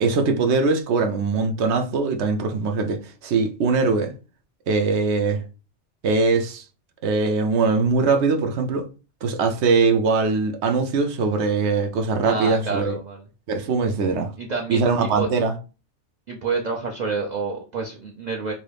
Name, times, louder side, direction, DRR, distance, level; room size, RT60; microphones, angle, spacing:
voice 1, 0.0-4.1 4.7-5.4 6.0-6.6 7.0-8.9 9.2-13.0 13.5-14.3 14.7-15.5, right 4 dB, 75° right, 0.9 m, -21 dB
voice 2, 12.2-13.2 14.4-15.3 16.3-18.5, right 4 dB, 50° right, 0.6 m, -28 dB
3.0 x 2.6 x 3.3 m
omnidirectional pair, 1.2 m